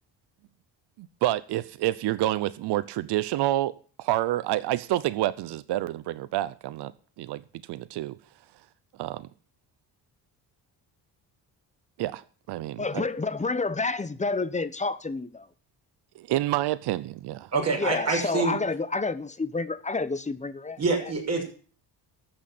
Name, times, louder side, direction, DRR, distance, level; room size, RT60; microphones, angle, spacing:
voice 1, 1.0-6.9 7.2-7.4 7.7-8.2 9.0-9.3 12.0-13.0 16.2-17.5, right 15 dB, 75° right, 0.7 m, -28 dB
voice 2, 12.8-15.5 17.8-20.8, left 3 dB, 15° left, 0.9 m, -29 dB
voice 3, 17.5-18.6 20.8-21.4, right 3 dB, 40° right, 6.3 m, -26 dB
14.0 x 6.0 x 8.5 m
cardioid pair, 105°, 40 cm